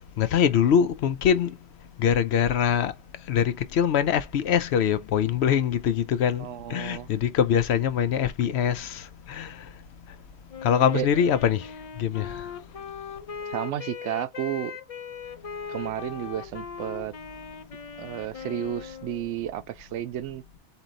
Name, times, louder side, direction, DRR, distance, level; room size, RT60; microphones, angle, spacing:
voice 1, 0.0-1.5 2.0-2.9 3.3-9.6 10.6-11.7 12.0-12.4, left 8 dB, 70° left, 0.8 m, -23 dB
voice 2, 6.4-7.1 10.9-11.1 13.5-14.7 15.7-17.1 18.0-20.4, right 11 dB, 80° right, 0.9 m, -32 dB
Wind instrument woodwind instrument, 10.5-19.3, left 6 dB, 45° left, 0.5 m, -39 dB
4.4 x 2.9 x 3.8 m
omnidirectional pair, 1.2 m